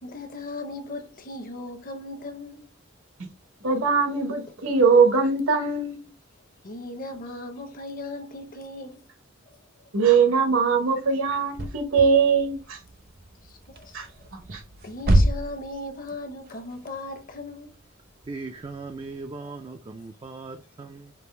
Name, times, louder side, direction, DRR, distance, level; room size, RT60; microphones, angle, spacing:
voice 1, 0.0-2.7 6.6-9.1 13.7-14.0 14.8-17.8 19.4-19.5, left 2 dB, 45° left, 0.7 m, -37 dB
voice 2, 3.6-6.1 9.9-12.8 13.9-14.1 14.3-14.6, right 5 dB, 75° right, 1.0 m, -21 dB
sound 1, 11.3-19.3, right 1 dB, 50° right, 0.7 m, -28 dB
voice 3, 18.3-21.1, right 3 dB, 25° right, 0.3 m, -38 dB
5.3 x 2.5 x 3.2 m
head